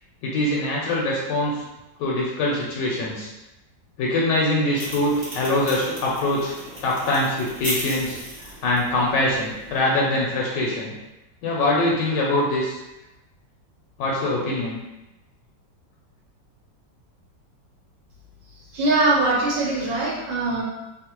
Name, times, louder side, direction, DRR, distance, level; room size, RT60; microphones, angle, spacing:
voice 1, 0.2-1.5 2.0-3.3 4.0-6.5 6.8-10.9 11.4-12.8 14.0-14.8, left 1 dB, 80° left, -3 dB, 1.2 m, -23 dB
sound 1, 4.7-9.9, right 1 dB, 25° right, 0.7 m, -36 dB
voice 2, 18.7-20.6, right 2 dB, 85° right, -4 dB, 1.6 m, -21 dB
3.4 x 2.0 x 2.9 m, 0.99 s
omnidirectional pair, 1.9 m